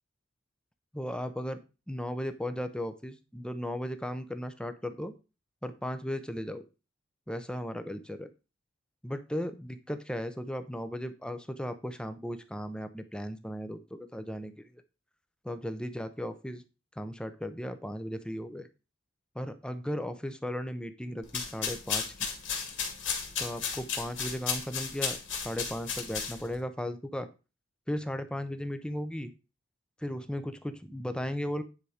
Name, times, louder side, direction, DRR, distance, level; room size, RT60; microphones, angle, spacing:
voice 1, 0.9-1.6 1.9-5.1 5.6-6.6 7.3-8.3 9.0-14.8 15.4-16.6 17.0-18.7 19.3-22.3 23.4-27.3 27.9-29.3 30.0-31.6, equal, 5° left, 10 dB, 0.7 m, -36 dB
sound 1, 21.2-26.6, left 6 dB, 70° left, 2.5 m, -34 dB
9.7 x 4.7 x 5.0 m, 0.30 s
head